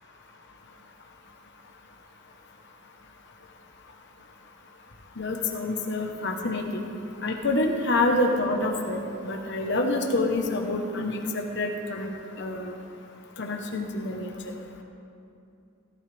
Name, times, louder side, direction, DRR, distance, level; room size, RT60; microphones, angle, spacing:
voice 1, 5.2-6.9 7.2-12.7 13.4-14.5, left 2 dB, 60° left, 2 dB, 1.2 m, -27 dB
16.5 x 12.5 x 3.5 m, 2.6 s
head